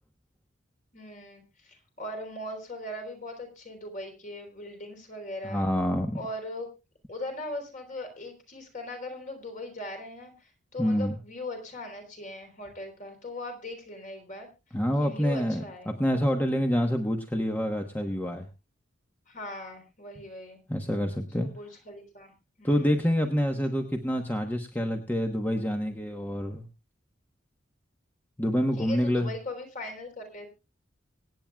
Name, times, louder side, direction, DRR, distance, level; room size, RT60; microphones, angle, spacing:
voice 1, 0.9-5.7 6.1-6.7 7.1-14.5 15.0-15.9 19.3-20.6 21.4-23.0 28.8-30.5, left 1 dB, 40° left, 4 dB, 3.7 m, -39 dB
voice 2, 5.4-6.2 10.8-11.2 14.7-18.5 20.7-21.5 22.6-26.7 28.4-29.3, equal, 10° left, 4 dB, 1.1 m, -27 dB
25.0 x 9.0 x 2.3 m, 0.27 s
head